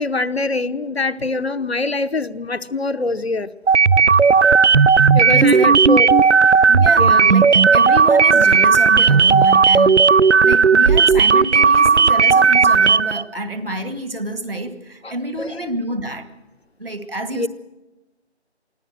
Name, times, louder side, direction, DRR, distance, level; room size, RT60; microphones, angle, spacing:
voice 1, 0.0-3.5 5.1-6.2 7.0-7.2 15.0-15.5 17.3-17.5, left 3 dB, 65° left, 1.0 m, -23 dB
sound 1, 3.7-13.2, right 5 dB, 90° right, 0.6 m, -13 dB
voice 2, 5.3-5.7 6.7-16.3 16.8-17.5, right 1 dB, 55° right, 2.2 m, -28 dB
23.5 x 16.0 x 7.8 m
figure-of-eight pair, 170°, 34 cm